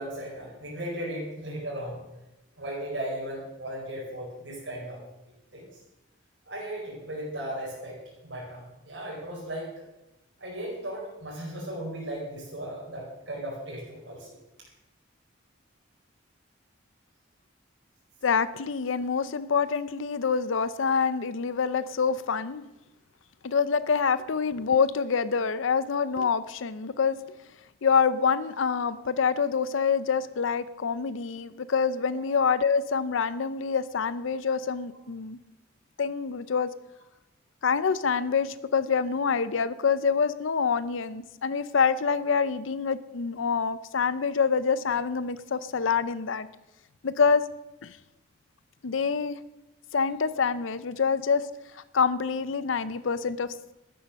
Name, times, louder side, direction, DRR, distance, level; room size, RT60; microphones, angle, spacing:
voice 1, 0.0-2.0 2.6-5.0 5.5-5.7 6.5-9.8 10.4-14.4, right 1 dB, 70° right, -4 dB, 5.1 m, -36 dB
voice 2, 18.2-22.6 23.4-27.2 27.8-35.4 36.0-36.7 37.6-46.5 47.0-47.5 47.8-48.0 48.8-49.4 49.9-51.5 51.9-53.5, left 6 dB, 80° left, 15 dB, 0.6 m, -26 dB
13.0 x 11.0 x 6.4 m, 0.94 s
head